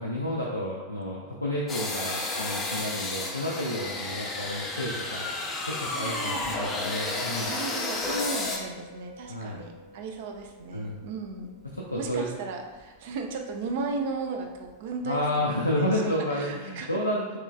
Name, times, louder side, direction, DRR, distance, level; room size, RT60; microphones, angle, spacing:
voice 1, 0.0-5.2 5.7-7.5 9.3-9.7 10.7-11.0 11.6-12.3 15.0-17.2, left 1 dB, 85° left, -3 dB, 0.4 m, -30 dB
sound 1, 1.7-8.6, left 2 dB, 25° left, 0.5 m, -32 dB
voice 2, 5.9-6.5 7.5-11.5 11.9-17.0, right 4 dB, 55° right, 3 dB, 0.4 m, -35 dB
Piano, 7.9-15.9, left 3 dB, 5° right, 0.9 m, -46 dB
3.0 x 3.0 x 2.3 m, 1.3 s
figure-of-eight pair, 90°, 0 cm